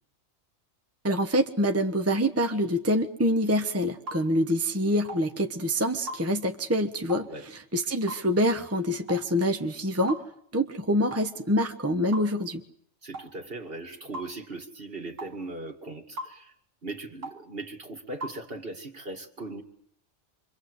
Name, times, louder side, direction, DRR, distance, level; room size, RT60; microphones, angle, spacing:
voice 1, 1.0-10.2 10.5-12.6, equal, 15° right, 6 dB, 1.1 m, -26 dB
sound 1, 4.1-4.2 5.1-5.3 6.1-6.2 7.1-7.3 8.1-8.3 9.1-9.3 10.1-10.2 11.1-11.3 12.1-12.3 13.1-13.3 14.1-14.3 15.2-15.4 16.2-16.4 17.2-17.4 18.2-18.4, right 1 dB, 90° right, 2.6 m, -37 dB
voice 2, 13.0-16.5 16.8-19.6, right 2 dB, 50° right, 4 dB, 2.5 m, -39 dB
27.0 x 23.5 x 8.2 m, 0.67 s
omnidirectional pair, 1.3 m